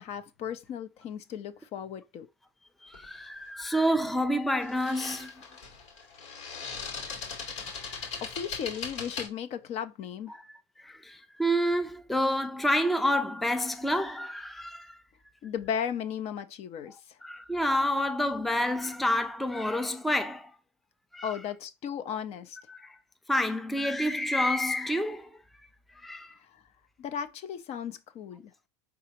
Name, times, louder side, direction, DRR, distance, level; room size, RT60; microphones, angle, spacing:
voice 1, 0.0-2.3 7.8-10.4 15.4-17.2 21.2-22.6 26.4-26.6 27.0-28.5, left 8 dB, 50° left, 0.7 m, -36 dB
voice 2, 2.8-5.3 7.6-7.7 8.0-8.1 10.3-10.4 10.8-15.0 17.2-20.5 21.1-21.3 22.7-23.0 23.3-25.3 26.0-26.3, equal, ahead, 0.4 m, -28 dB
sound 1, 2.9-3.2 4.6-9.3, left 5 dB, 85° left, 2.5 m, -39 dB
4.8 x 3.6 x 3.0 m
hypercardioid pair, 95°, 14 cm